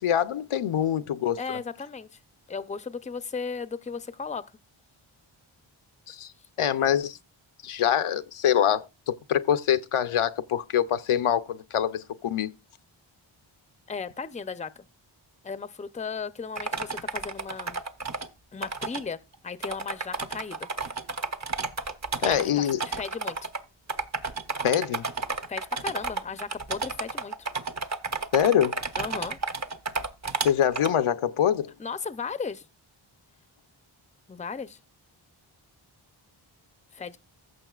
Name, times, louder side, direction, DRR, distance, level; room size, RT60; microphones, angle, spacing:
voice 1, 0.0-1.6 6.1-6.3 6.6-7.2 7.6-12.5 22.2-22.8 24.6-25.1 28.3-28.8 30.4-31.7, left 9 dB, 80° left, 0.7 m, -24 dB
voice 2, 1.4-2.1 2.5-4.5 13.9-14.7 15.4-17.8 18.5-20.7 22.2-23.5 25.5-27.5 29.0-29.4 31.8-32.6 34.3-34.8 36.9-37.2, left 5 dB, 15° left, 0.5 m, -35 dB
sound 1, 16.5-18.3 18.6-19.0 19.3-19.4 19.6-23.6 23.9-30.9, right 4 dB, 35° right, 0.8 m, -32 dB
15.0 x 6.5 x 2.3 m
wide cardioid pair, 55°, 49 cm